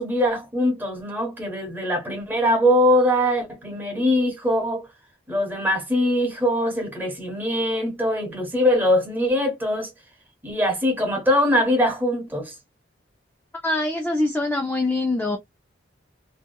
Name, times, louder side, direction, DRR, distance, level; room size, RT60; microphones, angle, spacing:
voice 1, 0.0-4.9 5.3-9.9 10.4-12.5, left 1 dB, 10° right, 1.0 m, -22 dB
voice 2, 13.6-15.4, left 2 dB, 10° left, 0.3 m, -23 dB
2.8 x 2.3 x 2.2 m
head